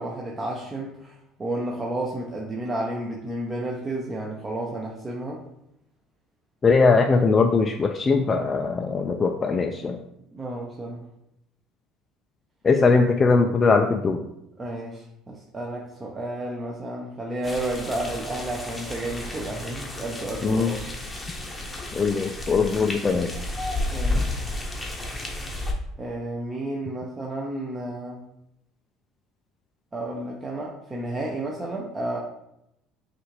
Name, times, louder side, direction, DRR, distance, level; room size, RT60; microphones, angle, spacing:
voice 1, 0.0-5.4 10.3-11.0 14.6-20.9 23.9-24.4 26.0-28.2 29.9-32.2, right 1 dB, 20° right, -2 dB, 0.7 m, -31 dB
voice 2, 6.6-10.0 12.6-14.2 20.4-20.7 21.9-23.3, left 4 dB, 25° left, 4 dB, 0.3 m, -20 dB
sound 1, 17.4-25.7, left 2 dB, 10° left, 0.8 m, -32 dB
6.1 x 2.5 x 3.2 m, 0.80 s
supercardioid pair, 105°, 0 cm